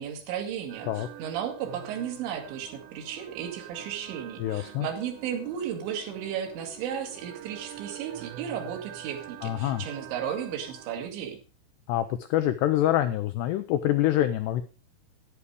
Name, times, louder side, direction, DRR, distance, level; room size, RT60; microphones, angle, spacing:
voice 1, 0.0-11.4, right 9 dB, 70° right, 4 dB, 4.1 m, -34 dB
sound 1, 0.7-11.1, right 10 dB, 85° right, 3.5 m, -45 dB
voice 2, 4.4-4.9 9.4-9.8 11.9-14.6, left 13 dB, 85° left, 10 dB, 2.4 m, -26 dB
11.5 x 9.7 x 4.8 m, 0.34 s
omnidirectional pair, 5.6 m